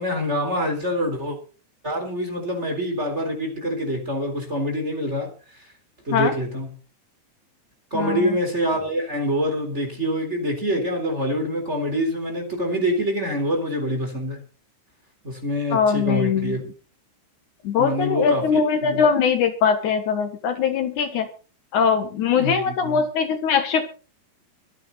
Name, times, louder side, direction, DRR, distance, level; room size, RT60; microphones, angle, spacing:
voice 1, 0.0-1.4 1.8-5.7 6.1-6.7 7.9-14.4 15.2-16.6 17.8-18.5 18.8-19.0 22.3-23.0, equal, 20° right, 3.9 m, -25 dB
voice 2, 7.9-8.4 15.7-16.6 17.6-21.3 21.7-23.8, left 6 dB, 65° left, 2.8 m, -21 dB
24.0 x 9.2 x 4.0 m
omnidirectional pair, 3.8 m